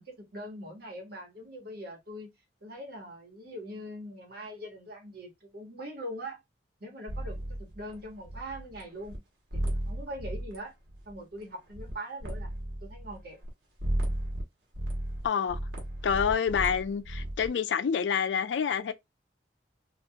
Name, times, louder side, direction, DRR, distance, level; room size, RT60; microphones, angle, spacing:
voice 1, 0.0-2.3 2.6-6.4 6.8-9.2 9.5-10.7 11.0-12.5 12.8-13.4, equal, 65° right, 1.2 m, -42 dB
sound 1, 7.1-8.8 9.1-9.2 9.5-10.6 10.9-11.4 11.7-11.9 12.2-13.5 13.8-14.4 14.8-17.5, right 1 dB, 90° right, 1.0 m, -34 dB
voice 2, 15.2-15.6 16.0-18.9, left 7 dB, 90° left, 0.4 m, -27 dB
2.8 x 2.4 x 2.2 m
head